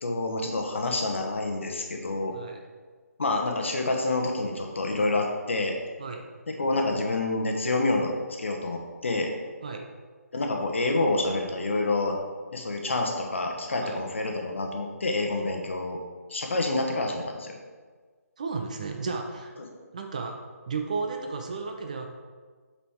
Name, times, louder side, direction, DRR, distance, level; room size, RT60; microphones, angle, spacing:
voice 1, 0.0-2.3 3.2-5.8 6.5-8.1 8.4-9.3 10.3-12.2 12.5-16.0 16.3-17.5, left 2 dB, 50° left, 2 dB, 0.9 m, -28 dB
voice 2, 18.4-19.5 19.9-20.4 20.7-22.1, right 4 dB, 25° right, 4 dB, 0.4 m, -33 dB
7.3 x 4.1 x 3.6 m, 1.5 s
figure-of-eight pair, 150°, 9 cm